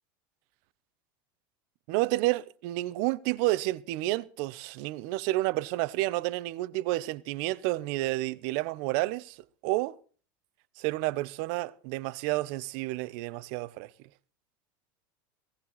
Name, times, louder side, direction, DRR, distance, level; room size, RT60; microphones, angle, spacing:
voice 1, 1.9-9.4 9.6-10.0 10.8-13.9, right 18 dB, 65° right, 0.9 m, -30 dB
17.0 x 15.0 x 4.1 m
supercardioid pair, 120°, 11 cm